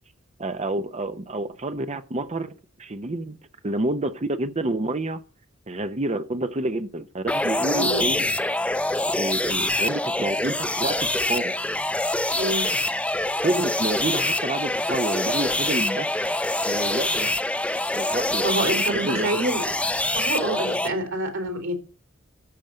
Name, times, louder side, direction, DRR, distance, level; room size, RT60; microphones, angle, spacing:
voice 1, 0.4-2.5 2.8-3.4 3.6-5.2 5.7-8.3 9.2-11.5 13.4-16.3 16.6-17.3 17.9-19.4, right 2 dB, 30° right, 0.7 m, -29 dB
sound 1, 7.3-20.9, left 1 dB, 5° left, 0.5 m, -25 dB
voice 2, 7.7-8.1 12.4-12.7 18.4-19.7 20.2-21.7, right 2 dB, 70° right, 3.6 m, -27 dB
13.5 x 5.2 x 7.6 m
head